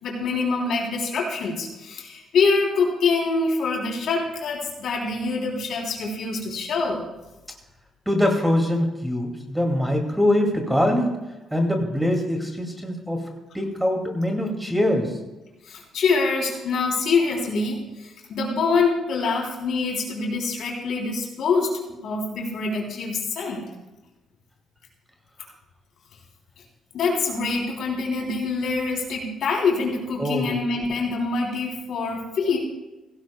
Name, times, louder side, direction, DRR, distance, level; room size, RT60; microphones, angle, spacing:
voice 1, 0.0-7.0 15.6-23.7 26.9-32.6, left 4 dB, 70° left, -1 dB, 3.4 m, -25 dB
voice 2, 8.1-11.1 11.5-13.2 13.5-15.1 30.2-30.6, left 1 dB, 5° right, 2 dB, 2.4 m, -23 dB
16.5 x 16.0 x 2.3 m, 1.0 s
cardioid pair, 90°, 0 cm